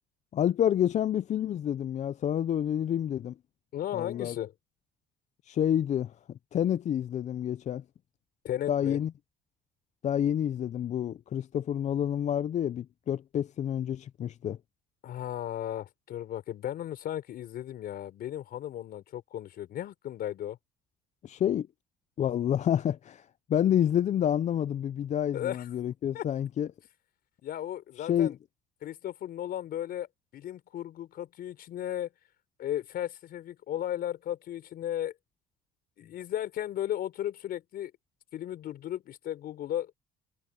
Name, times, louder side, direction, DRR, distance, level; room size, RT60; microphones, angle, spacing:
voice 1, 0.3-3.3 3.9-4.4 5.4-6.1 6.5-7.8 8.7-9.1 10.0-14.6 21.2-21.7 22.2-26.7 28.0-28.3, left 10 dB, 45° left, 0.5 m, -28 dB
voice 2, 3.7-4.5 8.4-9.0 15.0-20.6 25.3-25.7 26.1-26.2 27.4-28.3 28.8-30.1 30.3-32.1 32.6-35.1 36.0-37.9 38.3-39.9, left 11 dB, 65° left, 4.5 m, -35 dB
cardioid pair, 110°, 17 cm